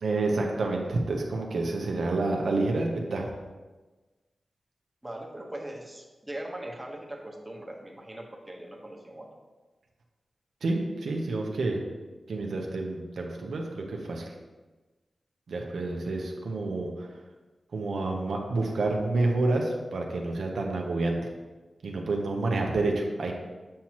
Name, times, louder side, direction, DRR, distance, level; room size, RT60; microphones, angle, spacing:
voice 1, 0.0-3.3 10.6-11.8 12.3-14.3 15.5-17.1 17.7-21.2 21.8-23.3, right 2 dB, 85° right, 1 dB, 0.8 m, -29 dB
voice 2, 5.0-9.3, right 1 dB, 10° right, -1 dB, 1.2 m, -40 dB
7.5 x 5.7 x 3.0 m, 1.2 s
cardioid pair, 70°, 0 cm